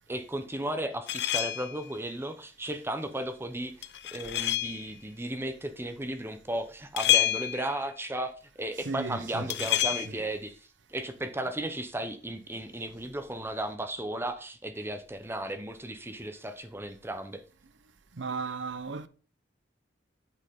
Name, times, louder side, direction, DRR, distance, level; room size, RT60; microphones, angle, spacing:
voice 1, 0.1-17.4, right 1 dB, 15° right, 0.8 m, -35 dB
sound 1, 1.1-1.8 3.8-4.9 7.0-7.8 9.5-10.1, left 13 dB, 65° left, 0.5 m, -28 dB
voice 2, 8.8-9.7 10.1-10.2 18.1-19.1, right 4 dB, 80° right, 0.9 m, -35 dB
8.4 x 8.3 x 3.7 m
head